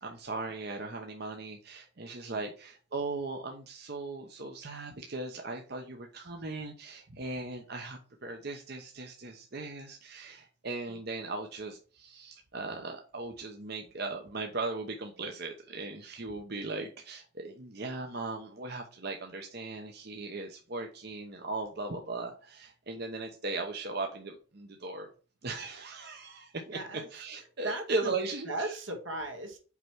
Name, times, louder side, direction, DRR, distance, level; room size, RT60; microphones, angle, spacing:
voice 1, 0.0-25.1 25.4-26.8 27.1-28.7, right 3 dB, 55° right, 3 dB, 0.9 m, -38 dB
voice 2, 26.7-27.1 27.6-28.2 28.5-29.6, right 2 dB, 80° right, 3 dB, 2.0 m, -37 dB
5.9 x 4.6 x 6.0 m, 0.38 s
head